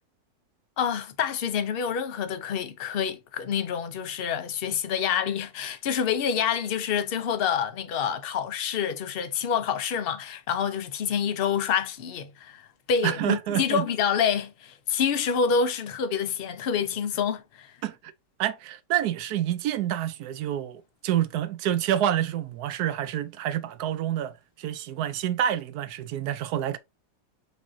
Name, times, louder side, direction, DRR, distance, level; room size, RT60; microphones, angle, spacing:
voice 1, 0.8-17.7, left 7 dB, 60° left, 0.6 m, -27 dB
voice 2, 13.0-13.8 17.8-18.1 18.4-26.8, right 11 dB, 80° right, 1.1 m, -28 dB
5.1 x 3.4 x 2.7 m
omnidirectional pair, 1.7 m